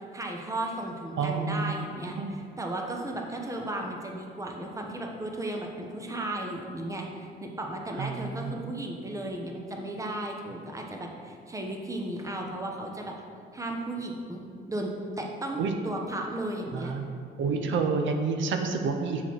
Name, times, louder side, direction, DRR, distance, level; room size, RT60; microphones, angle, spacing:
voice 1, 0.1-13.1 13.5-14.4 14.7-16.9, right 1 dB, 15° right, 1 dB, 1.0 m, -35 dB
voice 2, 1.2-2.3 8.0-8.5 15.6-15.7 16.7-17.1 17.4-19.2, right 4 dB, 75° right, 5 dB, 0.6 m, -29 dB
6.7 x 5.7 x 4.6 m, 2.3 s
cardioid pair, 90°, 20 cm